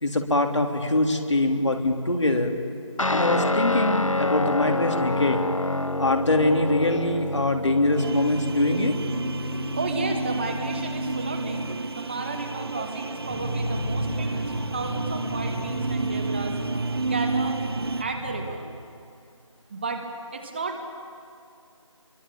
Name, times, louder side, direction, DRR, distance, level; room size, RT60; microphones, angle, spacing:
voice 1, 0.0-2.5 3.1-5.5 6.0-8.9, left 2 dB, 65° left, 3 dB, 3.4 m, -23 dB
Guitar, 3.0-11.8, left 2 dB, 85° left, 1.3 m, -28 dB
sound 1, 8.0-18.0, right 3 dB, 50° right, 0.9 m, -31 dB
voice 2, 9.7-16.6 17.0-17.6 18.0-18.7 19.7-20.0 20.3-20.9, right 3 dB, 20° right, 4 dB, 1.6 m, -33 dB
sound 2, 13.3-18.5, equal, 10° left, 2.0 m, -34 dB
28.5 x 23.5 x 8.7 m, 2.4 s
figure-of-eight pair, 165°, 16 cm